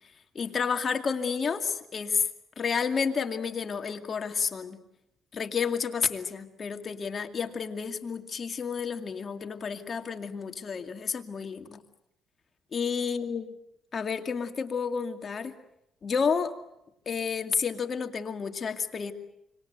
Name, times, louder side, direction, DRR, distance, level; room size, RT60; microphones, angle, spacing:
voice 1, 0.3-2.3 2.6-4.8 5.3-11.8 12.7-13.5 13.9-15.5 16.0-16.5 17.1-19.1, left 6 dB, 45° left, 7 dB, 2.3 m, -30 dB
26.5 x 25.5 x 8.1 m, 0.81 s
cardioid pair, 90°, 0 cm